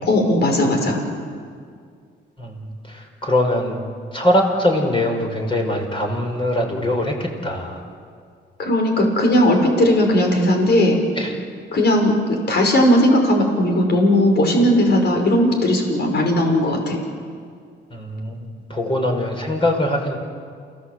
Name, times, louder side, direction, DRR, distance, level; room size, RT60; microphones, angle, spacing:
voice 1, 0.1-1.0 8.6-11.0 11.7-17.0, left 1 dB, 55° left, 2 dB, 5.5 m, -17 dB
voice 2, 2.4-3.8 4.1-7.8 11.2-11.3 17.9-18.4 18.7-20.2, left 1 dB, 25° left, 2 dB, 5.9 m, -22 dB
29.0 x 17.0 x 8.2 m, 2.1 s
cardioid pair, 90°, 20 cm